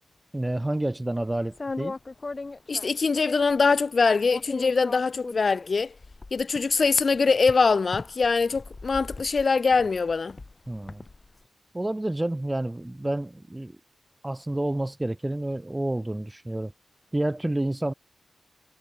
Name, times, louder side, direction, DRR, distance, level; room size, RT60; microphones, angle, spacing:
voice 1, 0.3-1.9 10.7-11.0 11.7-13.7 14.2-16.7 17.1-17.9, right 1 dB, 15° right, 0.4 m, -29 dB
sound 1, 1.4-3.6 4.3-11.3, left 3 dB, 35° left, 1.2 m, -38 dB
voice 2, 2.7-5.9 6.3-10.4, left 4 dB, 50° left, 0.4 m, -23 dB
wide cardioid pair, 100°, 0 cm